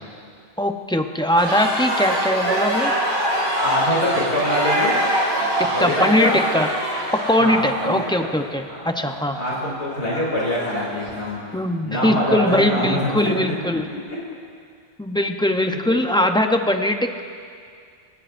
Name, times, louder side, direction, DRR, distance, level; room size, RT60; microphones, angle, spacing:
voice 1, 0.6-2.9 5.6-6.7 7.1-9.4 11.5-13.9 15.0-17.2, left 1 dB, 5° left, 5 dB, 0.5 m, -21 dB
sound 1, 1.4-11.3, right 1 dB, 60° right, 2.8 m, -24 dB
voice 2, 3.6-4.9 5.7-6.4 7.4-8.3 8.7-8.8 9.3-11.4 11.8-13.2 14.1-14.2 15.6-15.8, equal, 85° left, -5 dB, 3.4 m, -24 dB
26.5 x 16.0 x 2.6 m, 2.2 s
omnidirectional pair, 1.1 m